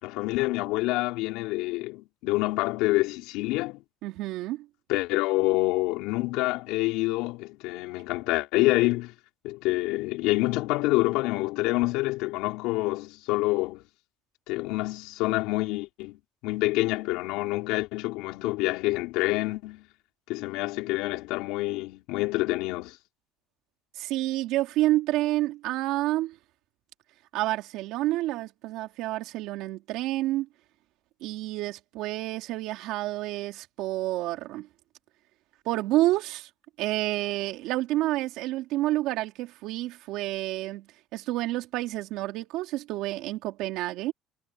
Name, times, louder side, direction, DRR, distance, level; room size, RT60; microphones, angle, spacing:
voice 1, 0.0-3.8 4.9-9.1 9.4-13.8 14.5-16.2 16.4-19.9 20.3-23.0, left 20 dB, 85° left, 4.8 m, -27 dB
voice 2, 4.0-4.7 24.0-26.3 27.3-30.5 31.2-34.7 35.6-36.5 36.8-40.9 41.1-44.1, right 16 dB, 70° right, 3.3 m, -29 dB
cardioid pair, 175°, 0 cm